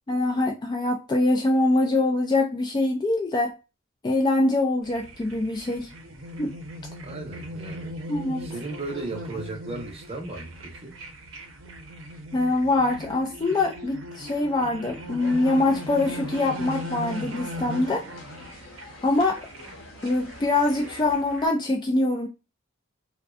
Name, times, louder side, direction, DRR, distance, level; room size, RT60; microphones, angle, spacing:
voice 1, 0.1-3.5 4.0-5.9 6.4-6.5 8.1-8.5 12.3-18.0 19.0-19.4 20.0-22.3, left 2 dB, 20° left, 0.3 m, -24 dB
sound 1, 4.8-21.5, equal, 75° right, 0.7 m, -39 dB
voice 2, 7.0-7.9 8.4-11.0, right 2 dB, 30° right, 0.7 m, -36 dB
sound 2, 15.2-21.2, left 2 dB, 65° left, 0.8 m, -45 dB
2.5 x 2.2 x 2.3 m
head